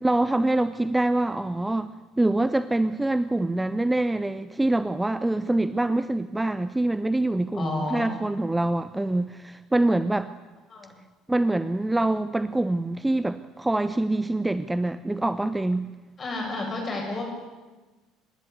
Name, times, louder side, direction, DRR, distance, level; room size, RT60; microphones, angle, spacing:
voice 1, 0.0-10.3 11.3-15.9, right 2 dB, 10° right, 13 dB, 0.7 m, -25 dB
voice 2, 7.5-8.1 10.7-10.9 16.2-17.3, left 2 dB, 35° left, 1 dB, 7.8 m, -31 dB
26.5 x 12.5 x 8.2 m, 1.2 s
figure-of-eight pair, 60°, 0 cm